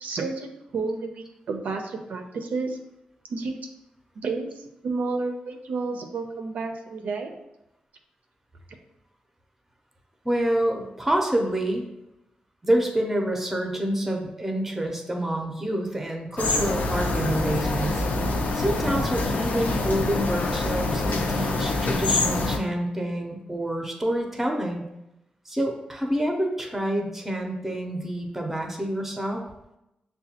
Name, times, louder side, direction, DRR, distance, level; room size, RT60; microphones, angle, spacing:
voice 1, 0.0-2.8 3.3-3.6 4.2-7.3, right 3 dB, 75° right, 4 dB, 0.5 m, -31 dB
voice 2, 10.2-11.9 12.6-18.0 18.5-24.8 25.5-29.4, right 1 dB, 10° right, 2 dB, 0.6 m, -27 dB
sound 1, 16.4-22.6, left 2 dB, 80° left, 0.5 m, -25 dB
6.7 x 2.2 x 2.8 m, 0.89 s
wide cardioid pair, 155°, 3 cm